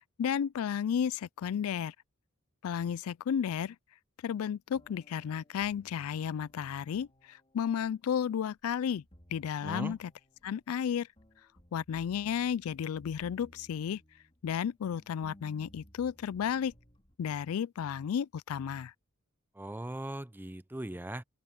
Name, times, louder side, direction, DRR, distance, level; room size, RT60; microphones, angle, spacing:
voice 1, 0.2-1.9 2.6-3.8 4.2-9.0 9.3-10.1 10.4-11.1 11.7-14.0 14.4-16.7 17.2-18.9, left 8 dB, 80° left, 0.3 m, -33 dB
sound 1, 4.7-17.2, equal, 25° left, 3.6 m, -60 dB
voice 2, 9.6-10.0 19.5-21.2, right 1 dB, 10° right, 0.5 m, -39 dB
head